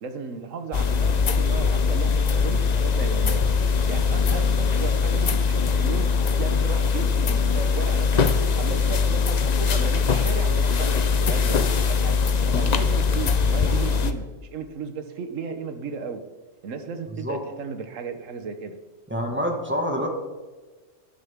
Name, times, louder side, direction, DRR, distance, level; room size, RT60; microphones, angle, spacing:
voice 1, 0.0-3.5 3.9-6.1 6.4-16.2 16.6-18.8, right 5 dB, 80° right, 8 dB, 1.4 m, -35 dB
sound 1, 0.7-14.1, left 5 dB, 45° left, 0.6 m, -21 dB
voice 2, 19.1-20.1, equal, 10° right, 1 dB, 1.8 m, -26 dB
12.5 x 11.0 x 3.6 m, 1.3 s
omnidirectional pair, 1.3 m